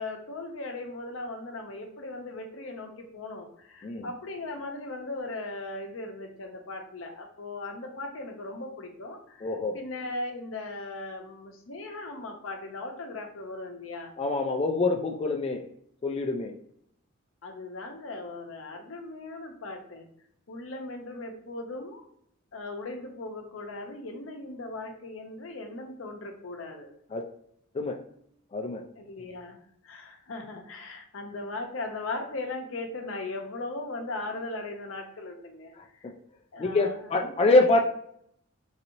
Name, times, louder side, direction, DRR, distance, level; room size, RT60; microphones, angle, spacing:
voice 1, 0.0-14.1 17.4-20.1 20.5-22.1 22.5-26.9 29.0-35.7 36.0-36.1 36.5-37.7, left 2 dB, 85° left, 3 dB, 0.7 m, -38 dB
voice 2, 9.4-9.8 14.2-15.6 16.0-16.5 27.1-27.2 27.7-28.0 28.5-28.8 36.6-37.8, left 2 dB, 30° left, 2 dB, 0.3 m, -25 dB
4.0 x 2.8 x 2.6 m, 0.69 s
head